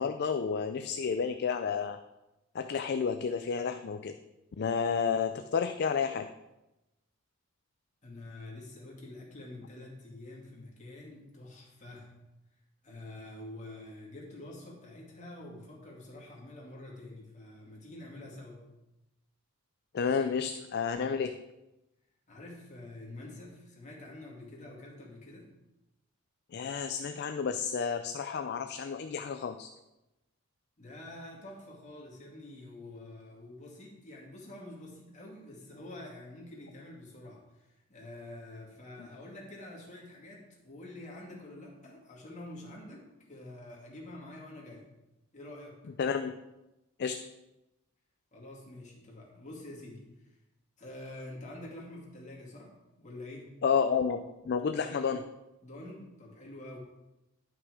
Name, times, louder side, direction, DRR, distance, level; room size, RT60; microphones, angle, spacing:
voice 1, 0.0-2.0 2.5-4.1 4.6-6.3 19.9-21.4 26.5-29.7 46.0-46.4 47.0-47.3 53.6-55.2, left 6 dB, 50° left, 8 dB, 0.4 m, -31 dB
voice 2, 8.0-12.1 12.8-18.7 22.3-25.5 30.8-44.9 45.3-45.8 48.3-50.3 50.8-53.5 54.7-55.1 55.6-56.8, left 1 dB, 35° left, -3 dB, 2.5 m, -47 dB
10.5 x 5.9 x 4.8 m, 0.98 s
head